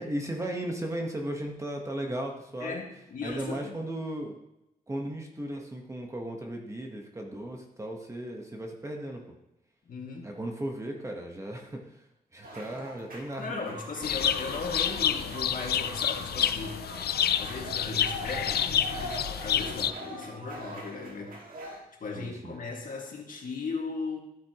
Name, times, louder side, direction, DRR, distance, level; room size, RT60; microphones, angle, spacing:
voice 1, 0.0-2.8 3.2-4.4 4.9-9.2 10.2-11.9 12.3-13.8 22.1-22.5, right 1 dB, 20° right, 1 dB, 1.2 m, -36 dB
voice 2, 2.6-3.8 9.9-10.3 13.4-16.9 17.4-24.2, left 4 dB, 60° left, 0 dB, 2.0 m, -37 dB
sound 1, 12.4-21.8, right 1 dB, 60° right, 2.1 m, -42 dB
sound 2, 14.0-19.9, left 9 dB, 90° left, 0.4 m, -29 dB
13.0 x 8.5 x 3.0 m, 0.87 s
wide cardioid pair, 145°, 16 cm